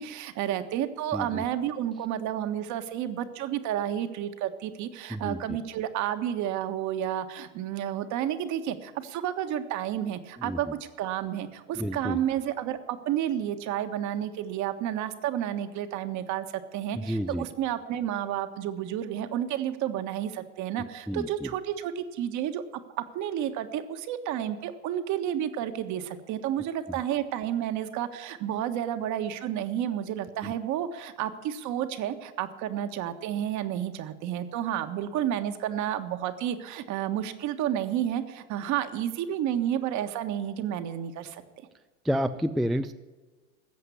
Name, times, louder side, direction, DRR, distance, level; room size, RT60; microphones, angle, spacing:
voice 1, 0.0-10.7 11.0-22.6 23.1-41.4, right 11 dB, 50° right, 8 dB, 1.5 m, -31 dB
voice 2, 1.1-1.4 5.1-5.6 10.4-10.7 11.8-12.2 16.9-17.4 21.1-21.5 30.4-30.5 42.0-42.9, equal, ahead, 9 dB, 0.4 m, -30 dB
13.5 x 8.0 x 9.6 m, 1.3 s
hypercardioid pair, 100°, 38 cm